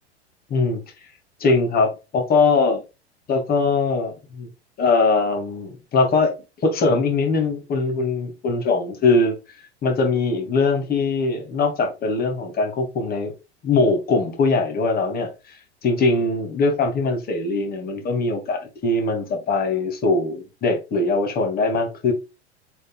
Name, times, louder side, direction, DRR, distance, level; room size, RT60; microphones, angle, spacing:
voice 1, 0.5-0.8 1.4-2.8 3.3-4.5 4.8-6.3 6.6-9.4 9.8-13.3 13.6-15.3 15.8-22.1, left 3 dB, 25° left, 2.7 m, -21 dB
7.7 x 5.5 x 2.5 m
figure-of-eight pair, 90°, 34 cm